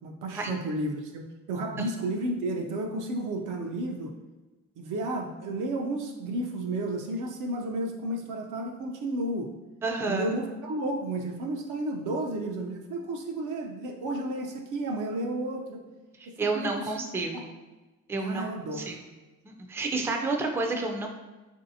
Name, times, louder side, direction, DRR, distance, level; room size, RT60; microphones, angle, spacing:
voice 1, 0.0-4.1 4.8-9.5 10.1-15.8 16.3-16.9 17.3-17.4 18.2-19.0, right 1 dB, 80° right, 2 dB, 0.6 m, -32 dB
voice 2, 9.8-10.3 16.2-17.5 18.1-18.4 18.7-18.9 19.5-21.1, right 3 dB, 10° right, 2 dB, 0.3 m, -30 dB
3.3 x 2.6 x 2.7 m, 1.2 s
cardioid pair, 90°, 30 cm